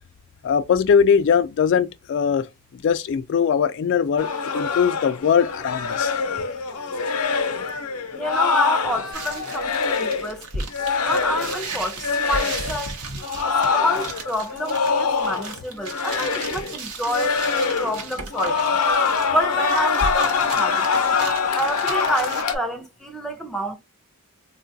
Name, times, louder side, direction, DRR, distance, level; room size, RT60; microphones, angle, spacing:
voice 1, 0.4-2.5 2.8-6.1, left 7 dB, 55° left, 0.3 m, -20 dB
sound 1, 4.2-10.3 10.7-11.7 12.0-12.8 13.2-15.6 15.8-16.8 17.1-18.0 18.3-22.6, left 5 dB, 90° left, 0.6 m, -24 dB
voice 2, 8.1-10.7 11.0-13.0 13.7-17.4 17.8-18.8 19.3-23.8, left 1 dB, ahead, 0.5 m, -28 dB
sound 2, 9.1-22.4, right 3 dB, 75° right, 0.8 m, -35 dB
3.7 x 2.3 x 2.6 m
head